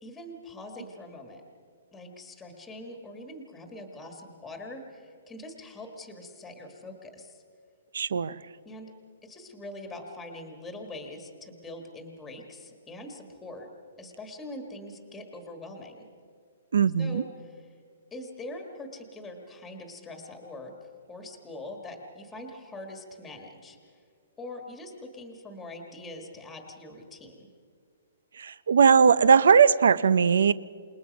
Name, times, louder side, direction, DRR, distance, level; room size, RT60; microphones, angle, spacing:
voice 1, 0.0-1.4 1.9-7.4 8.6-8.9 9.2-13.7 14.0-16.1 17.0-17.7 18.1-23.9 24.4-27.5, left 1 dB, 5° left, 4 dB, 1.5 m, -43 dB
voice 2, 7.9-8.3 16.7-17.2 28.4-30.5, right 6 dB, 75° right, 18 dB, 0.6 m, -19 dB
28.0 x 20.0 x 5.2 m, 2.1 s
hypercardioid pair, 180°, 0 cm